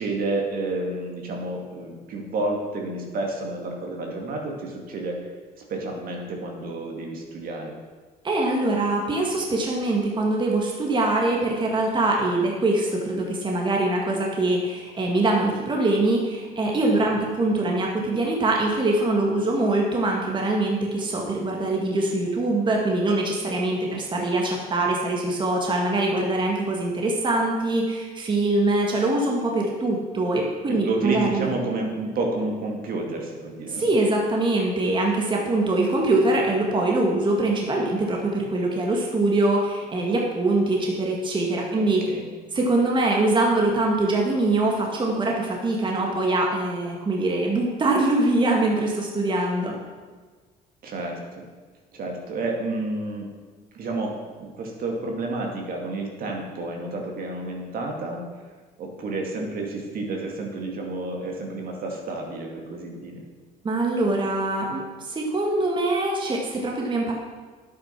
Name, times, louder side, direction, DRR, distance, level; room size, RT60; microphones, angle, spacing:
voice 1, 0.0-7.7 16.9-17.1 23.9-24.3 30.7-33.9 41.7-42.2 50.8-51.4 51.9-53.3 53.7-58.2 58.8-63.2, right 2 dB, 60° right, 1 dB, 2.3 m, -30 dB
voice 2, 8.2-31.5 33.7-42.0 42.5-49.8 63.6-64.8 65.1-67.1, right 2 dB, 30° right, -1 dB, 1.9 m, -23 dB
9.9 x 8.5 x 5.9 m, 1.4 s
cardioid pair, 110°, 17 cm